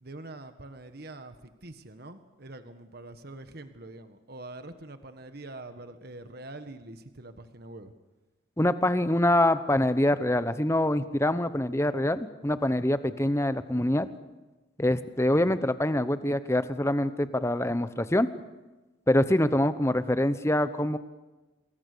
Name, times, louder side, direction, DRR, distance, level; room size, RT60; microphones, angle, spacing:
voice 1, 0.0-7.9, right 2 dB, 50° right, 9 dB, 1.5 m, -44 dB
voice 2, 8.6-14.1 14.8-18.3 19.1-21.0, left 1 dB, 15° left, 12 dB, 0.9 m, -25 dB
28.0 x 22.5 x 6.8 m, 1.2 s
head